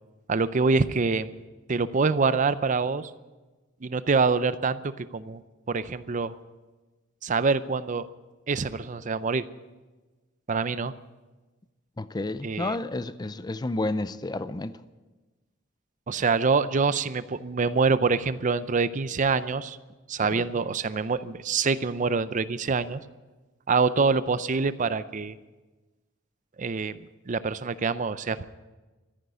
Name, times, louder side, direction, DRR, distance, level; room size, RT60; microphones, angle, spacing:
voice 1, 0.3-1.3 1.7-3.1 3.8-5.4 5.7-6.3 7.2-8.1 8.5-9.5 10.5-10.9 12.4-12.8 16.1-19.8 20.1-23.0 23.7-25.4 26.6-27.0 27.3-28.4, right 4 dB, 40° right, 0.5 m, -25 dB
voice 2, 12.0-14.7 20.3-20.5, left 2 dB, 20° left, 0.5 m, -31 dB
14.0 x 10.5 x 9.4 m
head